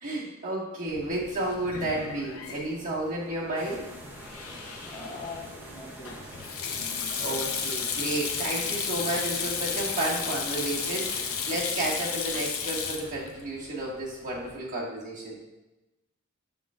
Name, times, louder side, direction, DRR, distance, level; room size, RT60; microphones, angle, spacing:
voice 1, 0.0-3.9 7.2-15.4, right 1 dB, 35° right, -6 dB, 1.8 m, -32 dB
Sink (filling or washing), 0.9-14.6, left 6 dB, 75° left, 0.7 m, -34 dB
sound 1, 3.5-11.6, right 1 dB, 10° right, 0.7 m, -45 dB
voice 2, 4.8-6.3, left 3 dB, 30° left, -1 dB, 0.8 m, -42 dB
7.4 x 7.2 x 2.5 m, 1.0 s
head